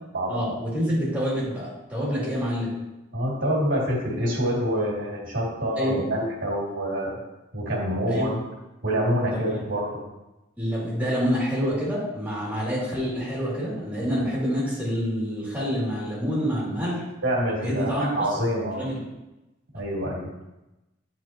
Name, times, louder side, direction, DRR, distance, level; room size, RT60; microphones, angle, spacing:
voice 1, 0.3-2.7 5.8-6.0 8.1-8.3 9.3-9.4 10.6-17.0 17.6-18.1 18.8-19.0, equal, 10° right, -7 dB, 2.3 m, -27 dB
voice 2, 3.1-7.2 7.5-8.4 8.8-10.0 17.2-18.9 19.7-20.3, equal, 90° right, -7 dB, 2.3 m, -26 dB
10.0 x 4.3 x 2.9 m, 0.99 s
head